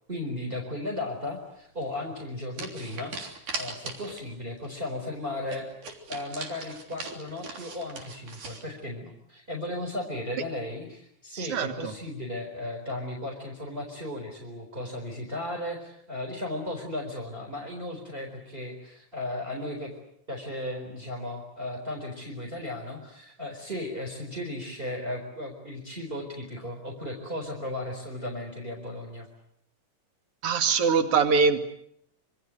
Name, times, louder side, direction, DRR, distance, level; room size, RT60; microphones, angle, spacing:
voice 1, 0.1-3.2 3.6-5.7 6.1-19.9 20.3-29.3, left 1 dB, 15° right, 2 dB, 4.6 m, -35 dB
sound 1, 1.8-2.0 2.5-4.3 4.6-4.7 5.0-5.1 5.5-8.6, right 4 dB, 85° right, 4.9 m, -40 dB
voice 2, 11.4-11.9 30.4-31.6, right 5 dB, 50° right, 6 dB, 2.8 m, -23 dB
26.5 x 25.5 x 7.9 m, 0.73 s
omnidirectional pair, 3.6 m